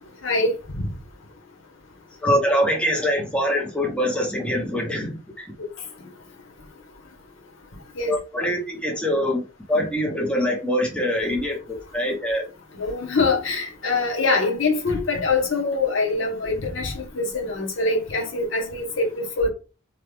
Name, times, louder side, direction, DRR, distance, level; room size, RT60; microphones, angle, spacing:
voice 1, 2.2-5.5 8.0-9.4 9.7-12.4, equal, 5° left, 0.8 m, -24 dB
voice 2, 12.8-19.5, left 3 dB, 90° left, 1.0 m, -24 dB
3.0 x 2.3 x 3.4 m
head